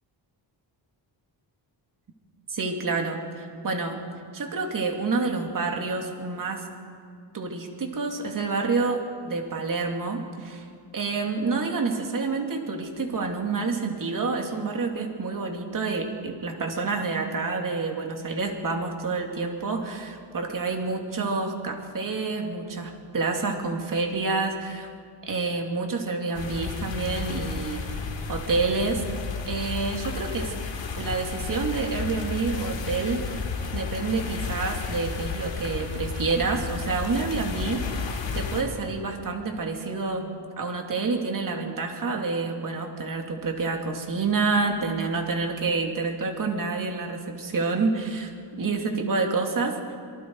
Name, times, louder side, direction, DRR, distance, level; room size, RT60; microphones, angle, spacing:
voice 1, 2.5-4.0 4.3-6.6 7.3-10.6 10.9-24.9 25.2-27.8 28.3-29.0 29.5-30.5 31.0-33.4 33.7-37.8 38.3-40.3 40.6-48.3 48.6-49.8, right 4 dB, 45° right, 2 dB, 2.9 m, -28 dB
sound 1, 26.3-38.6, left 5 dB, 80° left, 3.7 m, -32 dB
26.5 x 24.5 x 4.8 m, 2.3 s
wide cardioid pair, 155°, 45 cm